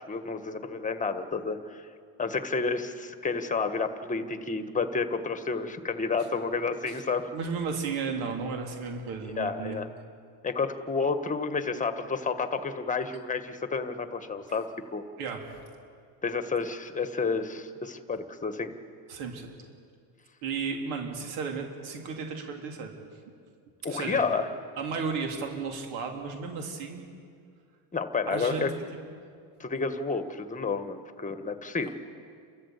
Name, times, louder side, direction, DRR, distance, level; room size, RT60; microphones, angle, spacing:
voice 1, 0.0-1.9 2.2-7.3 9.4-9.9 10.4-15.0 16.2-18.7 23.8-24.5 27.9-28.7 29.6-31.9, left 4 dB, 15° left, 9 dB, 1.5 m, -30 dB
voice 2, 7.3-9.8 15.2-15.4 19.1-19.5 20.4-22.9 23.9-24.2 24.8-27.0 28.3-28.7, right 5 dB, 70° right, 2 dB, 3.7 m, -34 dB
30.0 x 13.5 x 8.3 m, 2.3 s
cardioid pair, 135°, 49 cm